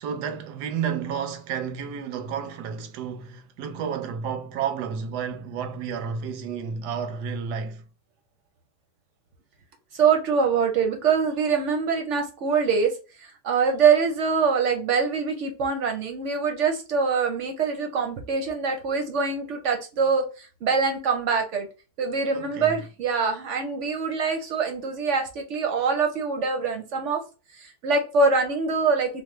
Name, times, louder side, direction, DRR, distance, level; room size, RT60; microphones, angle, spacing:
voice 1, 0.0-7.9 22.3-22.8, right 7 dB, 90° right, 1.2 m, -31 dB
voice 2, 9.9-12.9 13.2-21.7 22.0-27.2 27.5-29.2, right 5 dB, 65° right, 0.7 m, -24 dB
3.1 x 2.0 x 3.0 m
omnidirectional pair, 1.7 m